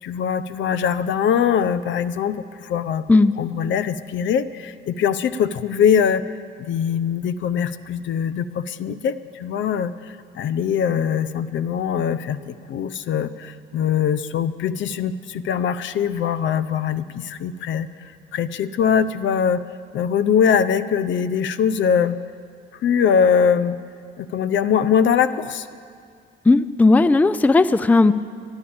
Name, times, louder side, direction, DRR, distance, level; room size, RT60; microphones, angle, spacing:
voice 1, 0.0-3.0 3.4-6.3 6.6-19.6 19.9-22.2 22.8-23.8 24.2-25.7, left 7 dB, 70° left, 15 dB, 0.6 m, -22 dB
voice 2, 26.4-28.1, left 3 dB, 10° left, 15 dB, 0.3 m, -15 dB
12.0 x 11.5 x 8.6 m, 2.2 s
cardioid pair, 90°, 20 cm